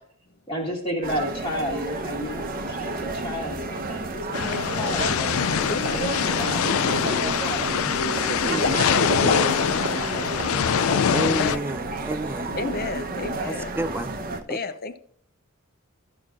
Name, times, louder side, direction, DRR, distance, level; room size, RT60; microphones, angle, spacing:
voice 1, 0.5-5.4 5.9-11.1 12.4-12.9, equal, 20° left, 1.6 m, -33 dB
sound 1, 1.0-14.4, right 2 dB, 45° right, 0.8 m, -31 dB
sound 2, 4.3-11.6, left 8 dB, 80° left, 0.4 m, -24 dB
voice 2, 5.7-6.4 8.9-9.1 11.3-11.7 12.6-13.7 14.5-15.0, left 3 dB, 45° left, 0.7 m, -32 dB
Water / Liquid, 6.2-6.3 6.6-7.3 7.6-10.1 10.4-10.6 11.0-11.1, left 2 dB, 65° left, 1.4 m, -32 dB
voice 3, 8.4-8.9 11.1-12.6 13.5-14.1, right 2 dB, 10° right, 0.3 m, -31 dB
13.5 x 6.0 x 2.4 m
head